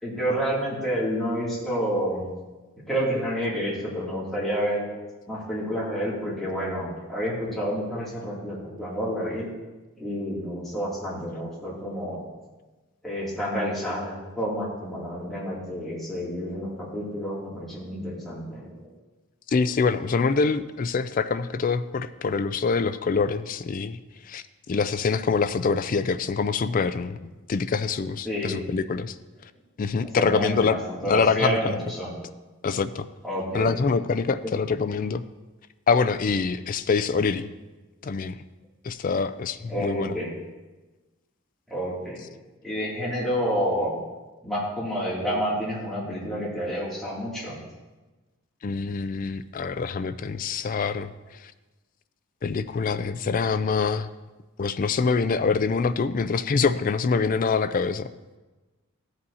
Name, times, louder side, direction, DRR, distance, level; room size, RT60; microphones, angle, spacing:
voice 1, 0.0-2.2 2.9-4.8 5.3-9.5 10.0-12.2 13.0-18.9 28.2-28.6 30.1-32.1 33.2-33.7 34.4-34.5 39.7-40.3 41.7-42.2 42.6-43.9 44.4-47.6, equal, ahead, -9 dB, 2.5 m, -29 dB
voice 2, 19.5-24.0 24.2-27.2 27.5-29.2 29.8-30.8 31.0-31.8 32.6-33.1 33.5-35.2 35.9-37.5 38.0-38.4 38.8-40.2 48.6-51.1 51.4-51.5 52.4-54.1 54.6-58.1, left 5 dB, 40° left, 13 dB, 0.3 m, -25 dB
14.0 x 7.9 x 2.8 m, 1.2 s
head